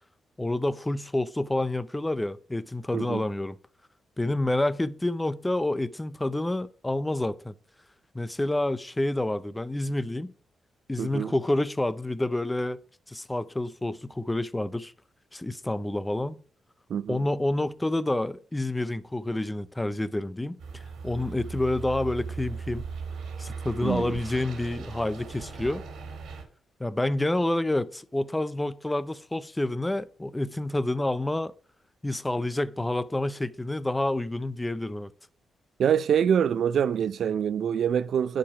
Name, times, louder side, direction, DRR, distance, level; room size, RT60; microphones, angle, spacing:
voice 1, 0.4-3.6 4.2-7.5 8.1-10.3 10.9-12.8 13.1-14.9 15.3-16.4 17.1-22.8 23.4-25.8 26.8-31.5 32.0-35.1, left 1 dB, 10° left, 0.5 m, -28 dB
voice 2, 11.0-11.3 16.9-17.2 23.8-24.2 35.8-38.4, right 8 dB, 65° right, 0.4 m, -25 dB
sound 1, 20.6-26.4, right 5 dB, 85° right, 2.3 m, -38 dB
10.5 x 4.8 x 6.0 m
cardioid pair, 120°, 0 cm